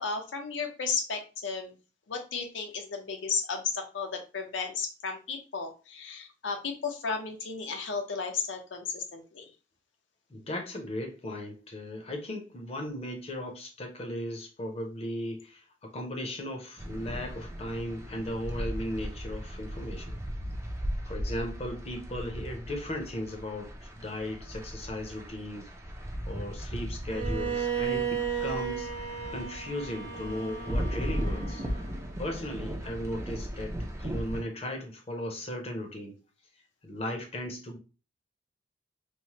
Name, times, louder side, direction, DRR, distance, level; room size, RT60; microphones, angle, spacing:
voice 1, 0.0-1.8 2.1-9.5, left 5 dB, 90° left, 4 dB, 0.6 m, -34 dB
voice 2, 10.3-20.2 21.1-25.7 26.3-28.9 29.3-31.7 32.2-36.2 36.8-37.8, left 1 dB, 35° left, 3 dB, 0.6 m, -37 dB
sound 1, 16.8-34.4, equal, 15° right, 0.4 m, -37 dB
Bowed string instrument, 27.1-32.1, right 7 dB, 85° right, 0.7 m, -34 dB
3.1 x 2.1 x 2.8 m, 0.32 s
head